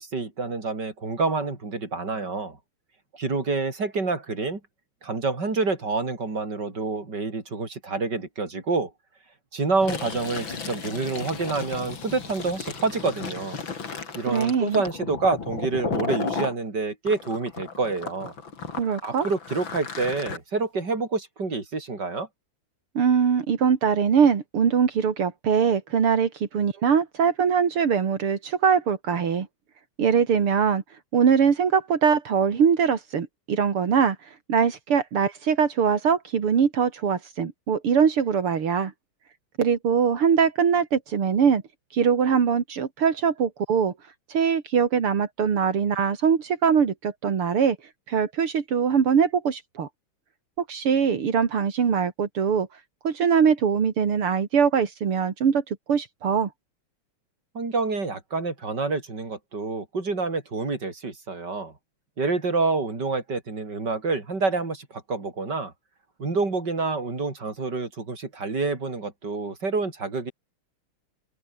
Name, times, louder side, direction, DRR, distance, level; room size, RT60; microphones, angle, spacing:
voice 1, 0.0-2.6 3.1-4.6 5.0-8.9 9.5-13.6 14.2-18.3 19.0-22.3 57.6-61.7 62.2-65.7 66.2-70.3, right 3 dB, 50° right, 5.2 m, -27 dB
Fill (with liquid), 9.7-16.5 17.1-20.4, left 5 dB, 60° left, 3.5 m, -34 dB
voice 2, 14.3-14.8 18.8-19.3 22.9-29.5 30.0-30.8 31.1-38.9 39.6-41.6 41.9-43.9 44.3-47.8 48.1-49.9 50.6-52.7 53.0-56.5, right 7 dB, 80° right, 3.2 m, -22 dB
open air
omnidirectional pair, 2.4 m